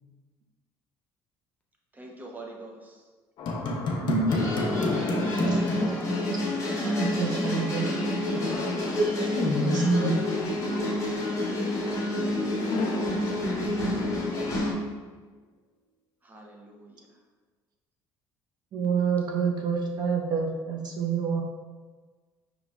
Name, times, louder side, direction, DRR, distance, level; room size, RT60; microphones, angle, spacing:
voice 1, 1.9-3.0 6.8-7.4 8.8-9.2 9.6-9.7 14.3-14.5 16.2-17.1, right 2 dB, 20° right, 0 dB, 0.8 m, -46 dB
sound 1, 3.4-6.7 7.0-7.1 8.3-9.8 12.6-14.2, left 3 dB, 60° left, 0.6 m, -32 dB
voice 2, 4.0-4.5 7.0-7.9 9.0-9.1 9.6-10.2 18.7-21.4, right 6 dB, 50° right, 1 dB, 0.6 m, -28 dB
sound 2, 4.3-14.7, left 1 dB, 35° left, 1.1 m, -29 dB
voice 3, 4.8-5.9 9.4-10.2, equal, 15° left, -2 dB, 0.7 m, -26 dB
5.2 x 3.0 x 2.4 m, 1.4 s
cardioid pair, 105°, 9 cm